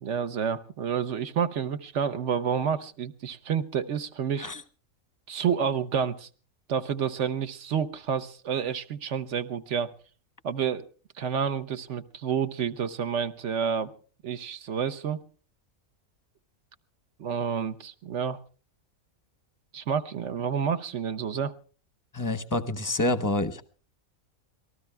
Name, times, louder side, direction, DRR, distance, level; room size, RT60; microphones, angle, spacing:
voice 1, 0.0-4.5 5.3-6.3 6.7-9.9 10.4-10.9 11.2-13.9 14.2-15.2 17.2-18.4 19.7-21.5, right 7 dB, 60° right, 10 dB, 1.1 m, -29 dB
voice 2, 22.1-23.6, left 2 dB, 15° left, 11 dB, 0.7 m, -27 dB
26.5 x 19.0 x 2.2 m, 0.39 s
omnidirectional pair, 1.5 m